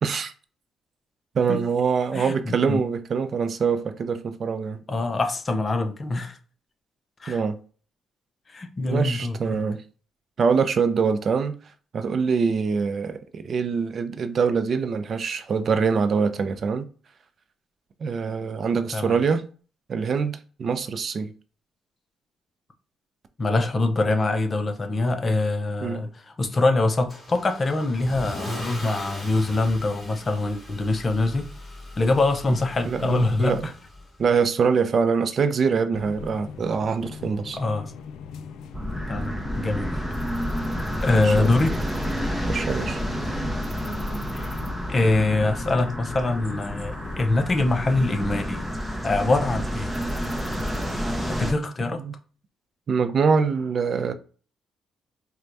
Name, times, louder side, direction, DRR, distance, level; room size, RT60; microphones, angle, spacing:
voice 1, 0.0-0.3 1.3-4.8 7.3-7.6 8.9-9.8 10.4-11.6 11.9-16.9 18.0-19.4 19.9-21.3 25.8-26.0 32.9-33.6 34.2-37.6 41.1-41.5 42.5-43.0 51.9-52.1 52.9-54.1, right 5 dB, 50° right, 0.5 m, -24 dB
voice 2, 2.1-2.8 4.9-6.4 7.2-7.4 8.5-9.6 18.9-19.2 23.4-26.1 26.4-31.5 32.0-33.7 37.5-37.9 39.1-40.1 41.0-41.7 44.3-44.6 44.9-48.7 49.0-49.9 51.3-52.0, left 2 dB, 35° left, 0.6 m, -24 dB
Car / Engine starting / Accelerating revving vroom, 27.1-34.2, left 1 dB, 15° left, 1.8 m, -38 dB
sound 1, 35.9-47.2, left 6 dB, 80° left, 0.3 m, -40 dB
sound 2, 38.7-51.5, equal, 5° right, 0.7 m, -29 dB
4.4 x 2.2 x 2.6 m
cardioid pair, 90°, 0 cm